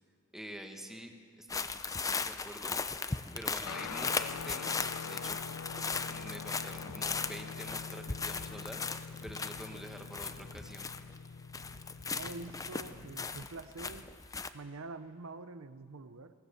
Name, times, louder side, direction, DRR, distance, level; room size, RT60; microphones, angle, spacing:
voice 1, 0.3-5.4 6.0-10.9, equal, ahead, 3 dB, 1.5 m, -48 dB
sound 1, 1.5-11.3 11.5-14.5, left 4 dB, 15° left, 0.6 m, -38 dB
Guitar, 3.7-13.4, left 5 dB, 85° left, 0.6 m, -45 dB
voice 2, 12.1-14.1 14.5-16.3, right 3 dB, 75° right, 11 dB, 0.7 m, -46 dB
21.5 x 18.0 x 7.0 m, 2.2 s
head